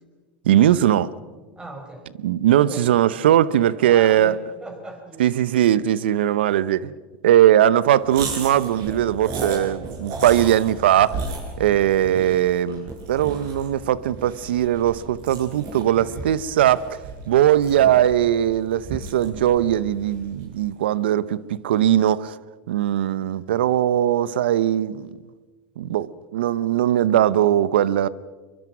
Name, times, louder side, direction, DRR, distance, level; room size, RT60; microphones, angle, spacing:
voice 1, 0.4-1.1 2.2-4.3 5.2-6.9 7.2-11.2 11.6-17.0 17.3-22.4 22.7-25.1 25.8-28.1, right 11 dB, 85° right, 0.7 m, -19 dB
voice 2, 1.5-2.1 2.6-3.0 3.7-5.3, right 2 dB, 15° right, 5.0 m, -38 dB
sound 1, 8.1-20.5, right 3 dB, 60° right, 7.6 m, -35 dB
23.5 x 23.0 x 6.0 m
hypercardioid pair, 100°, 6 cm